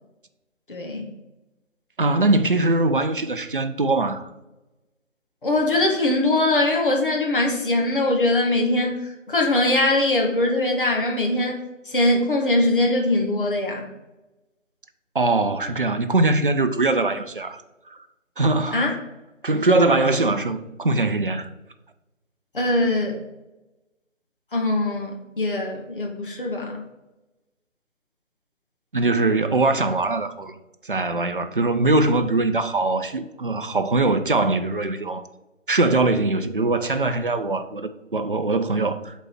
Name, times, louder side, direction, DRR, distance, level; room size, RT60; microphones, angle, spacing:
voice 1, 0.7-1.1 5.4-11.6 11.9-13.9 18.7-18.9 22.5-23.2 24.5-26.8, left 2 dB, 40° left, 1.3 m, -22 dB
voice 2, 2.0-4.3 15.1-17.6 17.9-18.0 18.4-18.9 19.4-21.5 28.9-30.6 30.8-35.2 35.7-39.1, right 2 dB, 45° right, 0.5 m, -22 dB
7.6 x 4.1 x 5.7 m
figure-of-eight pair, 155°, 39 cm